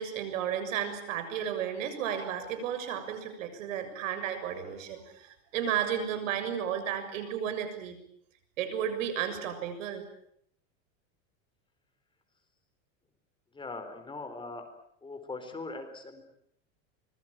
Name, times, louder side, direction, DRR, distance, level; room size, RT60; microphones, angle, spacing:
voice 1, 0.0-8.0 8.6-10.0, right 9 dB, 90° right, 9 dB, 7.0 m, -33 dB
voice 2, 13.5-14.6 15.0-16.2, left 3 dB, 15° left, 6 dB, 4.2 m, -40 dB
25.5 x 22.0 x 9.0 m, 0.70 s
supercardioid pair, 140°, 38 cm